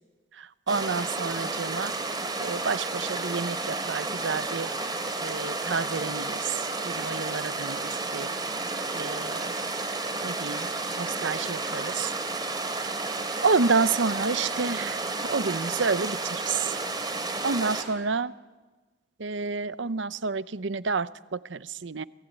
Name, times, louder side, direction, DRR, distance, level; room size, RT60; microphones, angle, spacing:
voice 1, 0.4-1.9 2.4-4.7 5.2-8.3 8.9-9.5 10.2-10.7 11.0-12.1 13.4-15.0 15.3-16.7 17.4-18.3 19.2-22.0, right 4 dB, 75° right, 16 dB, 0.7 m, -29 dB
sound 1, 0.7-17.8, right 3 dB, 20° right, 2.9 m, -31 dB
28.0 x 18.0 x 9.1 m, 1.3 s
head